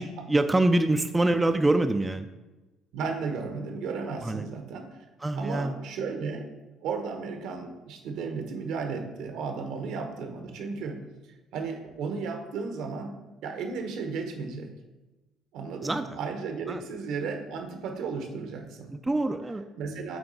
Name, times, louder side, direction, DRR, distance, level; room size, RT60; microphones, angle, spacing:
voice 1, 0.0-2.3 4.2-4.5 5.2-5.7 15.8-16.0 16.7-16.8 18.9-19.7, right 2 dB, 15° right, 8 dB, 0.3 m, -25 dB
voice 2, 2.9-5.0 5.3-6.5 6.8-11.0 11.5-13.1 13.4-14.7 15.5-18.9 19.8-20.2, right 5 dB, 75° right, 5 dB, 1.0 m, -34 dB
7.9 x 3.8 x 4.0 m, 1.1 s
cardioid pair, 110°, 0 cm